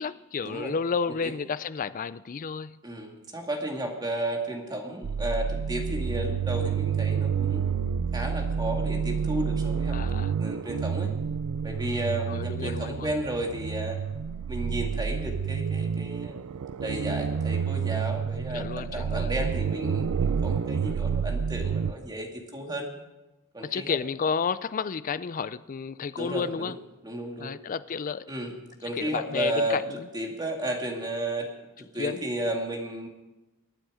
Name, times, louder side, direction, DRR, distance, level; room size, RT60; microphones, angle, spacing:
voice 1, 0.0-2.8 9.9-10.3 12.3-13.1 18.5-19.3 23.6-26.8 27.4-28.2 28.9-30.1 32.0-32.2, left 5 dB, 35° left, 15 dB, 0.4 m, -31 dB
voice 2, 2.8-7.6 8.1-11.1 11.6-14.0 14.5-16.4 16.8-22.9 23.5-24.0 26.2-26.7 27.0-27.5 28.3-28.5 28.8-29.8 30.1-31.5 31.8-33.1, right 1 dB, 20° right, 2 dB, 2.1 m, -33 dB
sound 1, 5.0-21.9, right 6 dB, 85° right, 0.4 m, -29 dB
23.5 x 9.0 x 4.9 m, 1.1 s
head